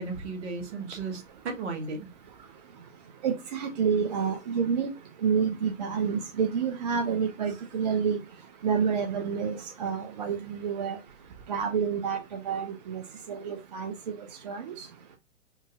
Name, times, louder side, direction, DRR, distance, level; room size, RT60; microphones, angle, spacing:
voice 1, 0.0-2.1, right 3 dB, 55° right, 1.3 m, -35 dB
voice 2, 3.2-4.9 5.2-8.2 8.6-11.0 11.5-12.2 12.4-13.0 13.3-13.9 14.5-14.8, right 6 dB, 35° right, 0.4 m, -28 dB
3.7 x 2.6 x 2.4 m
figure-of-eight pair, 120°, 40 cm